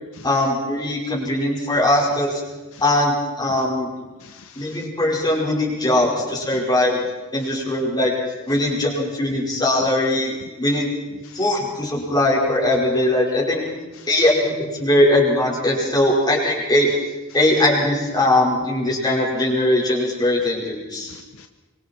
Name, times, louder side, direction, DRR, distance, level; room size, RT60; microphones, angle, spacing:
voice 1, 0.2-2.4 2.8-3.9 4.6-7.1 7.3-8.1 8.5-10.9 11.3-13.7 14.1-16.9 17.3-21.1, left 1 dB, 20° left, -2 dB, 5.2 m, -20 dB
voice 2, 4.2-4.9 7.4-7.5 11.2-11.4 13.9-14.1 21.1-21.5, left 5 dB, 65° left, 6 dB, 1.0 m, -46 dB
25.5 x 23.5 x 4.6 m, 1.2 s
head